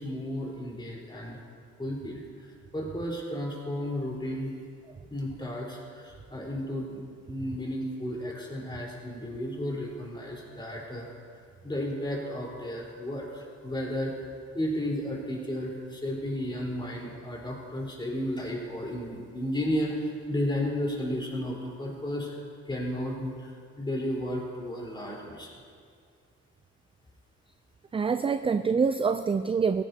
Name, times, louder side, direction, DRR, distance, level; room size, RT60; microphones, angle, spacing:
voice 1, 0.0-1.4 1.8-2.5 2.7-4.5 5.1-11.1 11.6-14.1 14.5-25.5, left 1 dB, 15° left, -3 dB, 4.1 m, -33 dB
voice 2, 27.9-29.8, right 5 dB, 20° right, 10 dB, 0.4 m, -25 dB
18.0 x 15.0 x 2.8 m, 2.2 s
cardioid pair, 90°, 30 cm